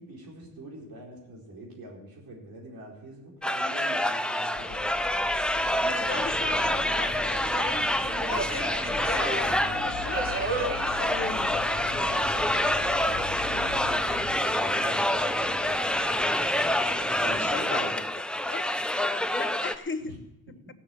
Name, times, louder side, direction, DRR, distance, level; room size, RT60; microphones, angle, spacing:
voice 1, 0.0-4.9 5.8-6.2 11.9-16.6 17.2-17.9 20.0-20.2, right 2 dB, 80° right, -1 dB, 4.2 m, -45 dB
sound 1, 3.4-19.8, left 1 dB, 5° left, 0.7 m, -27 dB
sound 2, 4.5-14.4, left 6 dB, 65° left, 1.4 m, -41 dB
voice 2, 5.8-10.4 11.0-11.6 17.2-18.0 18.5-18.7 19.3-20.2, left 4 dB, 35° left, 10 dB, 1.1 m, -37 dB
Subway metro underground, 6.0-17.6, right 2 dB, 35° right, 2.8 m, -38 dB
15.5 x 6.5 x 9.2 m, 0.93 s
cardioid pair, 75°, 35 cm